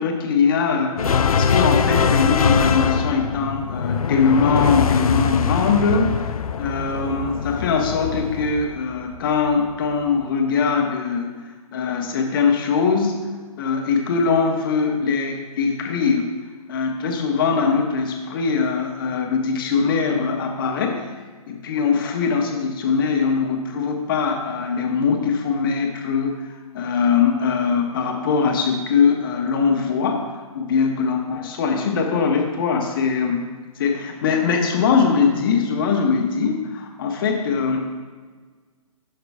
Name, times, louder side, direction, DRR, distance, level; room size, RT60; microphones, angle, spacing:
voice 1, 0.0-6.2 6.6-11.3 11.7-13.2 13.6-16.3 16.7-21.0 21.5-26.4 26.7-33.5 33.8-37.9, left 5 dB, 35° left, 2 dB, 1.2 m, -21 dB
sound 1, 1.0-9.6, left 6 dB, 70° left, 0.5 m, -22 dB
13.5 x 6.5 x 2.4 m, 1.4 s
figure-of-eight pair, 140°, 19 cm